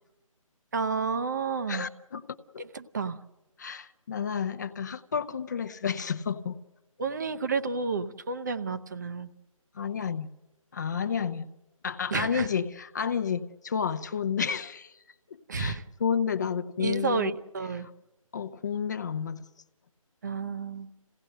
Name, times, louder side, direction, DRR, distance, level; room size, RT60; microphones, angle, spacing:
voice 1, 0.7-1.9 2.7-3.2 7.0-9.3 12.1-12.5 15.5-15.8 16.8-17.9 20.2-20.9, right 4 dB, 30° right, 11 dB, 0.7 m, -30 dB
voice 2, 1.7-2.2 2.5-2.6 3.6-6.6 9.7-10.3 10.7-11.5 11.8-14.9 15.3-17.3 17.8-17.9 18.3-19.4, left 7 dB, 30° left, 13 dB, 0.7 m, -31 dB
27.0 x 17.0 x 6.6 m, 1.0 s
figure-of-eight pair, 155°, 18 cm